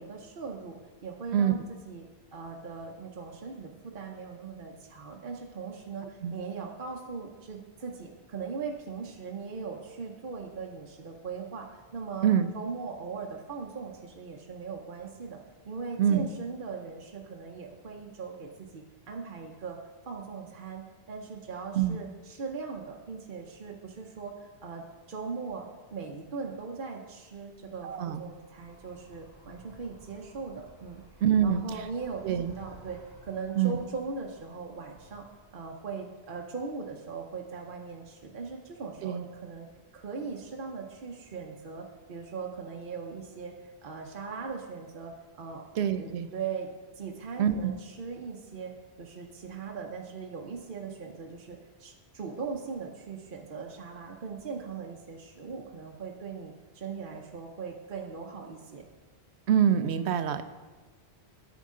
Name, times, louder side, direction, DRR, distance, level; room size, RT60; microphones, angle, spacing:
voice 1, 0.0-1.6 1.9-15.4 15.6-19.8 20.1-31.0 31.4-35.3 35.5-39.7 39.9-43.5 43.8-45.6 46.0-46.7 46.9-48.7 49.0-58.8, right 5 dB, 55° right, 0 dB, 0.9 m, -39 dB
Animal, 27.3-35.8, right 1 dB, 45° left, 1.9 m, -56 dB
voice 2, 27.8-28.2 31.2-31.6 32.2-32.5 33.6-33.8 39.0-39.2 45.8-46.3 47.4-47.7 59.5-60.4, right 9 dB, 80° right, 11 dB, 0.9 m, -25 dB
9.3 x 8.1 x 3.7 m, 1.3 s
omnidirectional pair, 1.1 m